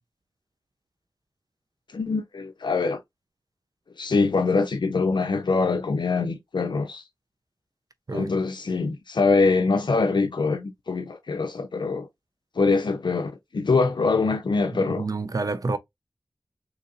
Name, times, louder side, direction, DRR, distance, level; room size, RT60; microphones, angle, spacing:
voice 1, 1.9-3.0 4.0-7.0 8.1-12.1 12.6-15.1, left 4 dB, 75° left, 0.5 m, -24 dB
voice 2, 14.7-15.8, right 3 dB, 50° right, 0.5 m, -28 dB
3.9 x 2.7 x 2.6 m
wide cardioid pair, 45°, 8 cm